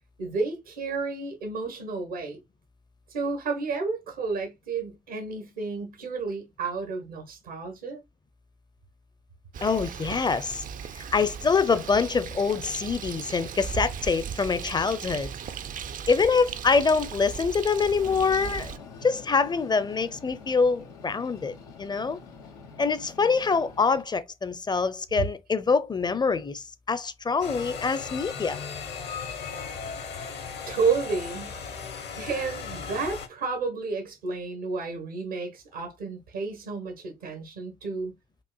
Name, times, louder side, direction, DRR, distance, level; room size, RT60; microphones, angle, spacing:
voice 1, 0.2-2.4 3.1-8.0 30.7-31.5 32.2-38.1, right 4 dB, 80° right, 1.1 m, -31 dB
Bird, 9.5-18.8, right 7 dB, 40° right, 0.4 m, -37 dB
voice 2, 9.6-10.6 11.0-15.3 16.1-18.7 19.0-22.2 22.8-28.6, left 5 dB, 20° left, 0.6 m, -25 dB
Train, 18.0-24.0, left 5 dB, 85° left, 0.7 m, -46 dB
sound 1, 27.4-33.3, left 6 dB, 55° left, 1.0 m, -37 dB
5.4 x 2.4 x 2.3 m
hypercardioid pair, 50°, 20 cm